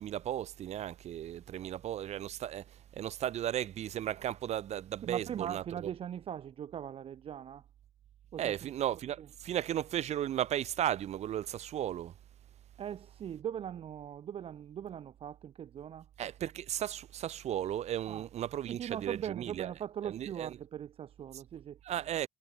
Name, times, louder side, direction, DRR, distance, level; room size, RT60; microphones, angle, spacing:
voice 1, 0.0-2.6 2.9-5.9 8.4-12.1 16.2-19.7 20.0-20.5 21.8-22.3, right 11 dB, 70° right, 1.4 m, -35 dB
voice 2, 5.0-7.6 8.3-8.7 9.2-9.3 12.8-16.1 18.1-18.3 18.7-21.8, right 9 dB, 55° right, 0.6 m, -40 dB
cardioid pair, 85°, 12 cm